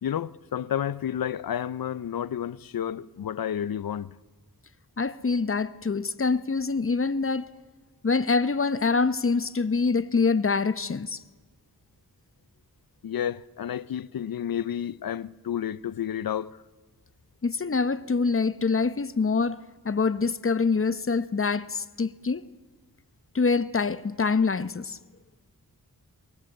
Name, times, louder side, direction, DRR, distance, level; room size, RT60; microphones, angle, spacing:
voice 1, 0.0-4.2 13.0-16.6, left 9 dB, 70° left, 0.6 m, -31 dB
voice 2, 5.0-7.5 8.0-11.2 17.4-19.6 19.8-22.4 23.3-25.0, left 4 dB, 35° left, 0.9 m, -25 dB
23.5 x 20.0 x 7.8 m
cardioid pair, 50°, 36 cm